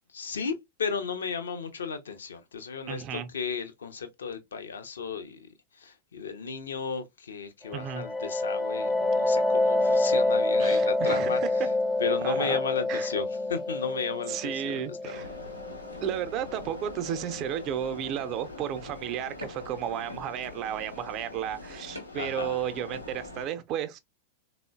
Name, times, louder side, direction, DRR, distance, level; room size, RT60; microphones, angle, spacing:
voice 1, 0.1-5.5 5.7-11.7 12.0-15.3 22.1-22.6, left 5 dB, 70° left, 0.5 m, -34 dB
voice 2, 2.9-3.3 7.7-8.1 10.6-11.5 12.2-12.6 12.9-13.1 14.3-15.3 16.0-24.0, right 10 dB, 35° right, 0.5 m, -33 dB
sound 1, 7.7-17.2, left 2 dB, 15° left, 0.5 m, -27 dB
sound 2, 15.1-23.5, left 2 dB, 85° left, 0.8 m, -42 dB
3.6 x 2.0 x 2.3 m
figure-of-eight pair, 90°, 0 cm